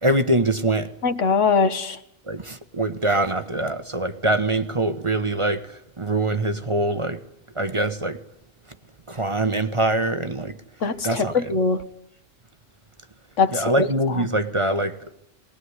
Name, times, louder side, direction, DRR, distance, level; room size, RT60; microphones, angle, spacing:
voice 1, 0.0-0.9 2.3-5.7 6.0-7.2 7.5-8.2 9.1-10.6 11.0-11.5 13.5-15.1, right 1 dB, 25° right, 1.1 m, -23 dB
voice 2, 1.0-2.0 10.8-11.8 13.4-13.9, left 4 dB, 90° left, 1.7 m, -21 dB
20.0 x 20.0 x 9.6 m
omnidirectional pair, 1.2 m